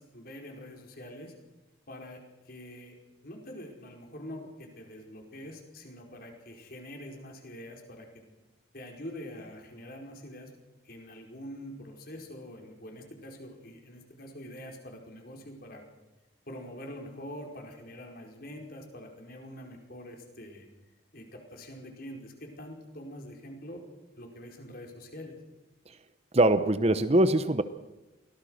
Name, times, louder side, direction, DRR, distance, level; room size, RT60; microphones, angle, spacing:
voice 1, 0.0-1.3 1.9-2.9 3.2-8.2 8.7-10.5 10.8-15.8 16.5-20.7 21.1-23.8 24.2-25.3, equal, 50° left, 2 dB, 5.0 m, -45 dB
voice 2, 26.3-27.6, right 1 dB, 30° right, 12 dB, 0.9 m, -22 dB
23.5 x 18.0 x 6.5 m, 1.1 s
head